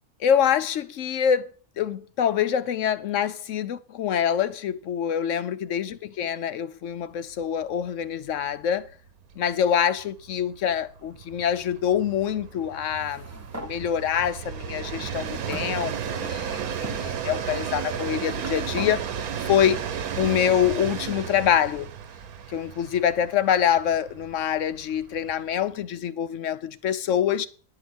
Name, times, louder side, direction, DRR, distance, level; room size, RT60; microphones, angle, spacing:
voice 1, 0.2-9.0 9.4-13.3 13.6-19.1 19.5-19.8 20.1-21.9 22.5-27.5, left 9 dB, 65° left, 0.9 m, -25 dB
Train, 7.4-7.5 7.8-7.9 8.2-25.6, right 8 dB, 80° right, 1.4 m, -34 dB
sound 1, 12.9-13.8 14.6-14.7 15.5-16.3 16.8-17.0 17.9-19.0, right 1 dB, 15° right, 0.8 m, -40 dB
11.0 x 4.8 x 7.8 m
omnidirectional pair, 1.6 m